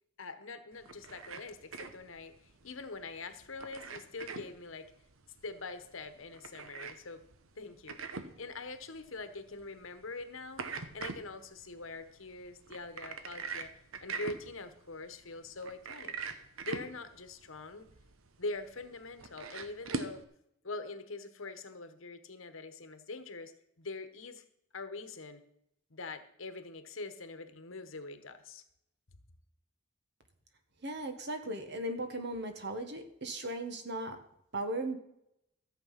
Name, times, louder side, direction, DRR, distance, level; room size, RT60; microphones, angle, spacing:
voice 1, 0.2-4.9 5.4-7.2 7.6-8.0 8.4-10.6 10.9-16.2 16.6-17.9 18.4-20.2 20.6-24.4 24.7-25.4 25.9-28.6, left 3 dB, 70° left, 10 dB, 1.2 m, -44 dB
sound 1, 0.7-20.2, right 4 dB, 80° right, 1.0 m, -44 dB
voice 2, 30.8-34.2 34.5-35.0, right 1 dB, 55° right, 7 dB, 1.7 m, -37 dB
14.0 x 7.8 x 5.9 m, 0.78 s
head